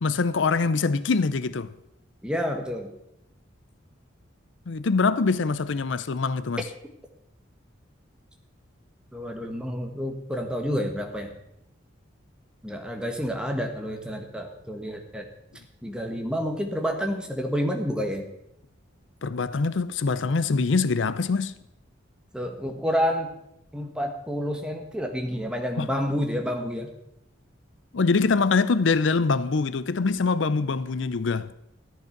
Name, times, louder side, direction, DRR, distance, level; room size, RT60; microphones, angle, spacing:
voice 1, 0.0-1.7 4.7-6.6 19.2-21.6 25.8-25.9 27.9-31.5, left 4 dB, 75° left, 0.5 m, -24 dB
voice 2, 2.2-2.9 9.1-11.3 12.6-15.2 15.8-18.3 22.3-23.3 23.7-26.9, equal, 5° right, 1.5 m, -29 dB
13.5 x 10.5 x 5.9 m
head